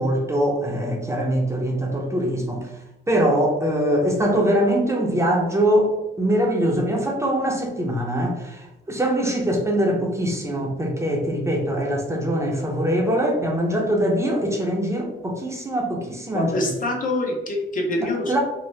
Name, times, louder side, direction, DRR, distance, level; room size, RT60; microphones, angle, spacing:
voice 1, 0.0-2.7 3.1-5.9 6.2-16.7 18.0-18.4, equal, 15° right, -1 dB, 0.6 m, -23 dB
voice 2, 16.3-18.3, left 1 dB, 45° left, 1 dB, 0.7 m, -25 dB
2.8 x 2.0 x 3.1 m, 0.93 s
cardioid pair, 90°, 20 cm